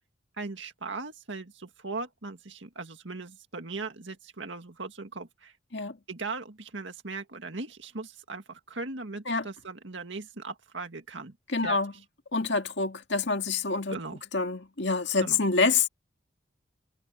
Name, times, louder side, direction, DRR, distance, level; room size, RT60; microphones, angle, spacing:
voice 1, 0.4-5.5 6.1-11.4 11.6-11.8 13.9-14.2 15.2-15.4, right 3 dB, 75° right, 2.0 m, -38 dB
voice 2, 11.5-11.9 12.3-14.0 14.3-15.9, left 4 dB, 70° left, 2.0 m, -26 dB
head